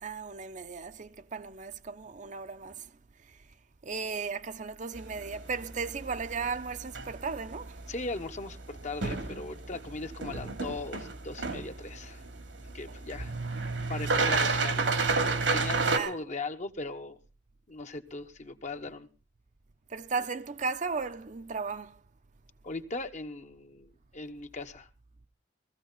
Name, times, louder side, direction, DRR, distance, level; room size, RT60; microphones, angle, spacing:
voice 1, 0.0-2.9 3.8-7.8 15.9-16.2 19.9-21.9, right 4 dB, 45° right, 0.7 m, -35 dB
sound 1, 5.0-16.0, right 3 dB, 90° right, 2.6 m, -32 dB
voice 2, 7.9-12.2 12.7-13.3 13.9-15.0 15.5-17.2 17.7-19.1 22.6-24.9, left 3 dB, 40° left, 1.1 m, -39 dB
18.5 x 15.0 x 4.0 m
head